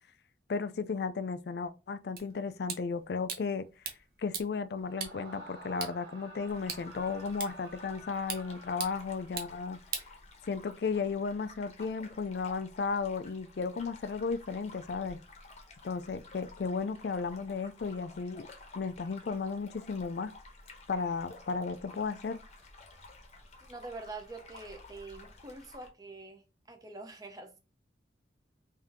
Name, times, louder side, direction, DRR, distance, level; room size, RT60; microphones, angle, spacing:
voice 1, 0.5-3.6 4.2-9.8 10.5-15.2 15.8-18.5 18.7-20.3 20.9-22.4, left 5 dB, 60° left, 0.4 m, -34 dB
sound 1, 2.2-10.8, right 6 dB, 55° right, 0.8 m, -44 dB
Screaming, 4.8-9.6, right 1 dB, 70° right, 2.0 m, -51 dB
sound 2, 6.5-25.9, left 2 dB, 35° left, 0.8 m, -53 dB
voice 2, 23.6-27.6, right 3 dB, 20° right, 0.6 m, -45 dB
3.6 x 2.7 x 3.4 m
head